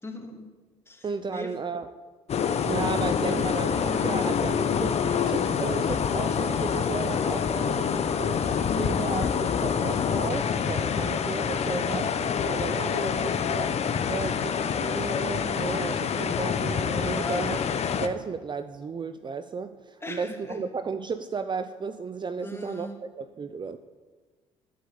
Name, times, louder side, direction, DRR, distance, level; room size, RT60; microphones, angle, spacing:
voice 1, 0.0-0.5 0.9-1.5 11.6-12.1 17.1-17.5 20.0-20.6 22.4-23.0, left 1 dB, 15° left, 2 dB, 2.8 m, -39 dB
voice 2, 1.0-1.9 2.4-8.5 8.7-12.1 12.5-17.6 18.0-22.9 23.2-23.8, right 5 dB, 30° right, 11 dB, 0.7 m, -34 dB
sound 1, 2.3-18.1, left 7 dB, 50° left, 1.1 m, -26 dB
11.5 x 8.3 x 8.4 m, 1.3 s
hypercardioid pair, 65°, 14 cm